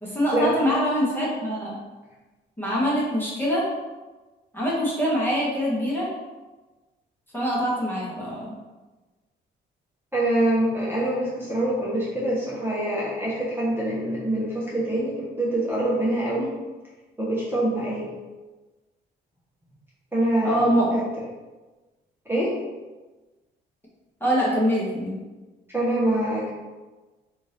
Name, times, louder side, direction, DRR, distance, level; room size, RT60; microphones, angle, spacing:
voice 1, 0.0-1.8 2.6-3.6 4.5-6.1 7.3-8.5 20.4-20.9 24.2-25.2, equal, 10° left, -6 dB, 1.2 m, -24 dB
voice 2, 10.1-16.5 17.2-18.1 20.1-20.6 20.9-21.0 22.3-22.5 25.7-26.5, right 1 dB, 10° right, -7 dB, 1.1 m, -25 dB
3.5 x 2.7 x 3.4 m, 1.2 s
cardioid pair, 90°, 20 cm